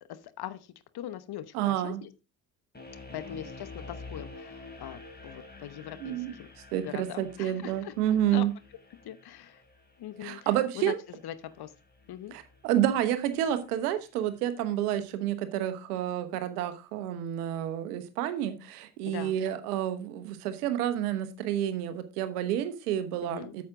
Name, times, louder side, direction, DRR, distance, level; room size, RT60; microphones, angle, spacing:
voice 1, 0.1-2.1 3.1-6.5 6.8-8.5 9.0-9.6 10.0-10.5 10.7-11.7 12.1-12.3 19.1-19.4 23.2-23.5, left 11 dB, 60° left, 14 dB, 1.1 m, -41 dB
voice 2, 1.5-2.0 6.0-6.3 6.7-8.5 10.2-11.0 12.3-23.6, right 11 dB, 85° right, 10 dB, 1.1 m, -29 dB
sound 1, 2.7-13.8, left 3 dB, 20° left, 3.5 m, -49 dB
8.7 x 7.3 x 3.7 m, 0.28 s
hypercardioid pair, 50°, 44 cm